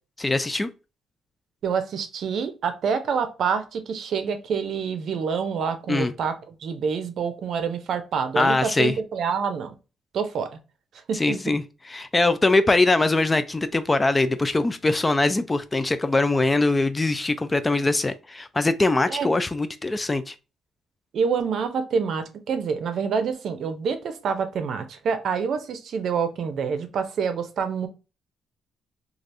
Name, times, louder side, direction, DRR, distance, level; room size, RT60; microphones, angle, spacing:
voice 1, 0.2-0.7 5.9-6.1 8.4-8.9 11.1-11.6 11.9-20.4, left 2 dB, 20° left, 0.3 m, -22 dB
voice 2, 1.6-6.3 6.6-9.8 10.1-10.5 11.1-11.4 19.1-19.3 21.1-27.9, right 6 dB, 65° right, 0.5 m, -27 dB
3.3 x 2.4 x 2.6 m
cardioid pair, 90°, 0 cm